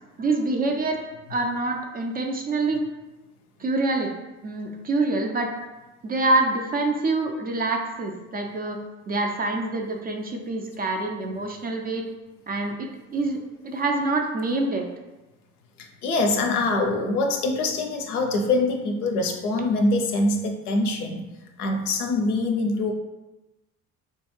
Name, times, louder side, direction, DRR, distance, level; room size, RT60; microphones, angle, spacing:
voice 1, 0.2-2.8 3.6-4.1 4.4-5.5 6.0-8.8 9.1-12.0 12.5-14.9, right 2 dB, 25° right, 2 dB, 0.3 m, -26 dB
voice 2, 15.8-21.3 21.6-22.9, left 2 dB, 85° left, 3 dB, 0.5 m, -24 dB
3.3 x 2.2 x 3.0 m, 1.1 s
figure-of-eight pair, 50°, 43 cm